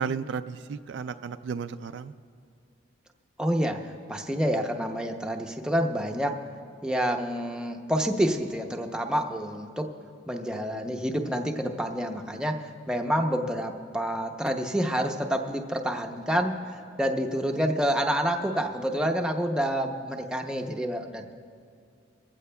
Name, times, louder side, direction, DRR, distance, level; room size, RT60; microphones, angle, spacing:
voice 1, 0.0-2.1, right 6 dB, 65° right, 10 dB, 0.3 m, -33 dB
voice 2, 3.4-6.4 6.8-9.9 10.3-16.6 17.0-21.3, equal, 5° right, 2 dB, 0.6 m, -28 dB
22.0 x 15.0 x 2.2 m, 2.3 s
head